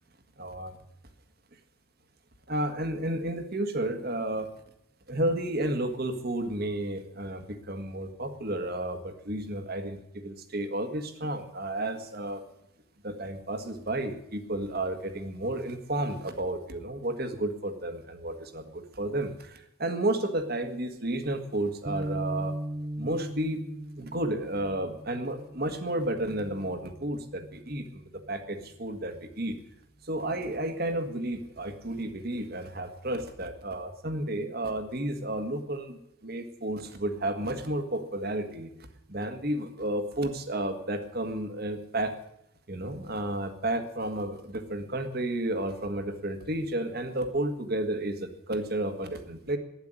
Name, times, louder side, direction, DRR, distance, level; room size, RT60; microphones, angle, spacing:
voice 1, 0.4-0.8 2.5-4.5 5.1-12.4 13.0-22.6 23.0-23.6 24.0-29.6 30.0-38.7 39.1-42.1 42.7-49.6, right 1 dB, 50° right, 8 dB, 1.7 m, -32 dB
sound 1, 21.8-28.3, right 1 dB, 30° right, 0.6 m, -39 dB
11.5 x 9.8 x 9.9 m, 0.80 s
head